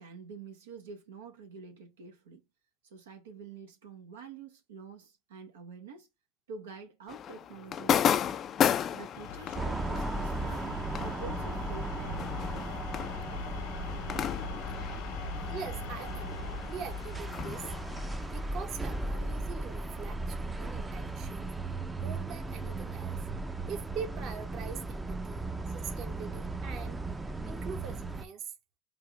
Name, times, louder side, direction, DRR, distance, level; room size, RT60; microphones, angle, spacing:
voice 1, 0.0-2.4 2.8-6.1 6.5-8.4 8.9-10.7 11.0-12.6 15.9-16.0, right 5 dB, 90° right, 0.7 m, -47 dB
sound 1, 7.1-16.0 16.3-19.9, left 9 dB, 40° left, 0.3 m, -34 dB
sound 2, 9.1-20.7, left 4 dB, 70° left, 1.0 m, -41 dB
sound 3, 9.5-28.2, right 2 dB, 15° right, 0.5 m, -37 dB
voice 2, 15.5-17.7 18.3-21.5 22.0-23.2 23.7-27.0 27.4-28.5, right 6 dB, 50° right, 0.9 m, -43 dB
3.4 x 2.4 x 4.4 m
hypercardioid pair, 90°, 0 cm